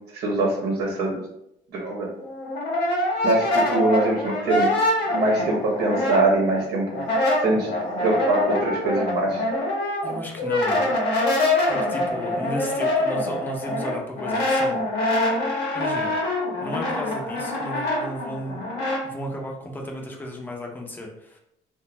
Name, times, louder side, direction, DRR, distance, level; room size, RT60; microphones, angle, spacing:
voice 1, 0.1-1.2 1.7-2.1 3.2-4.7 5.1-7.0 7.4-7.7 8.0-9.5, right 2 dB, 70° right, -3 dB, 0.8 m, -23 dB
Brass instrument, 2.2-6.6 6.9-19.0, left 1 dB, 75° left, 0.8 m, -25 dB
voice 2, 10.0-11.0 11.7-14.8 15.7-16.1 16.6-18.6 19.0-21.4, equal, 10° left, 0 dB, 0.5 m, -34 dB
2.4 x 2.1 x 3.0 m, 0.79 s
cardioid pair, 110°, 17 cm